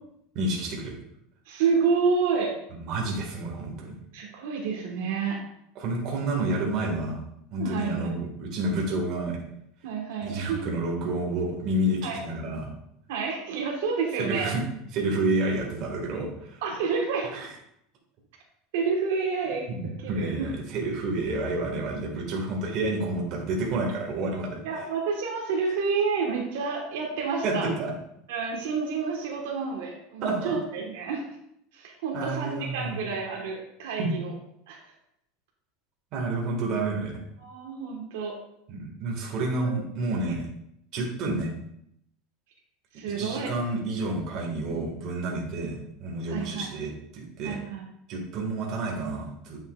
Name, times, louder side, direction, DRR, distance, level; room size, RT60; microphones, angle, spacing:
voice 1, 0.3-1.0 2.8-3.9 5.7-7.2 7.5-9.4 10.2-12.7 14.2-14.6 14.9-16.6 17.3-17.5 19.7-19.8 20.1-24.6 27.4-27.9 30.2-30.5 32.1-33.1 34.0-34.1 36.1-37.2 38.7-40.4 40.9-41.5 43.2-47.6 48.1-49.6, right 2 dB, 45° right, -1 dB, 1.6 m, -29 dB
voice 2, 1.5-2.6 4.1-5.4 7.6-8.1 9.8-10.6 12.0-12.2 13.1-14.6 16.6-17.4 18.7-20.5 24.6-27.7 28.3-31.2 31.7-34.3 34.7-34.8 37.4-38.3 39.6-39.8 42.9-43.5 46.3-46.7 47.4-47.8, right 5 dB, 80° right, 0 dB, 1.2 m, -29 dB
8.5 x 5.5 x 2.3 m, 0.75 s
supercardioid pair, 160°, 0 cm